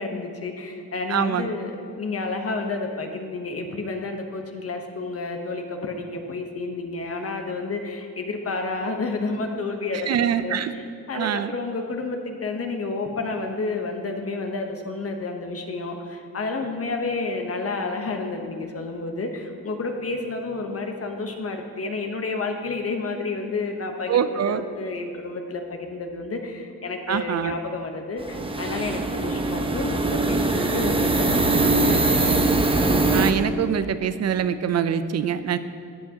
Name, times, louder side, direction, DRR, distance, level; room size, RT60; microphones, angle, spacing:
voice 1, 0.0-32.5, left 3 dB, 40° left, 4 dB, 1.0 m, -30 dB
voice 2, 1.1-1.5 10.1-10.7 11.1-11.5 24.1-24.6 27.1-27.5 33.1-35.6, right 8 dB, 45° right, 12 dB, 0.5 m, -24 dB
sound 1, 28.2-33.3, right 2 dB, 15° right, 0.7 m, -22 dB
12.5 x 7.8 x 2.9 m, 2.5 s
cardioid pair, 70°, 36 cm